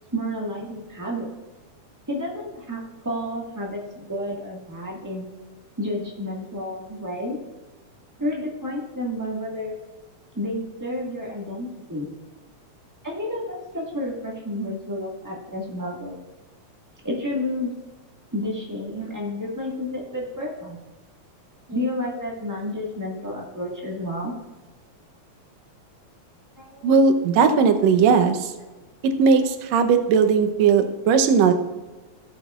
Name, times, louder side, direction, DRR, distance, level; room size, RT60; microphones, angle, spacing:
voice 1, 0.1-1.3 2.1-2.8 3.0-5.2 5.8-7.4 8.2-9.7 10.3-12.1 13.0-16.2 17.0-17.7 18.3-20.8 21.7-24.3 26.6-26.9 29.4-29.5, left 1 dB, 20° right, -4 dB, 0.4 m, -30 dB
voice 2, 26.8-28.5 29.0-31.5, right 5 dB, 75° right, 8 dB, 1.9 m, -18 dB
17.0 x 7.6 x 2.4 m, 1.2 s
omnidirectional pair, 3.3 m